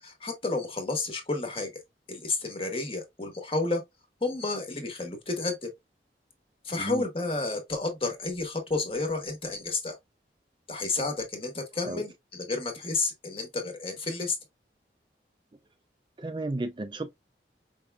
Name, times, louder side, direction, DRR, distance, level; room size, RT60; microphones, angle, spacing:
voice 1, 0.0-1.7 2.1-3.8 4.2-5.7 6.6-9.9 10.7-14.4, left 3 dB, 30° left, 1.3 m, -31 dB
voice 2, 16.2-17.1, right 2 dB, 25° right, 0.4 m, -33 dB
5.2 x 3.4 x 2.2 m
head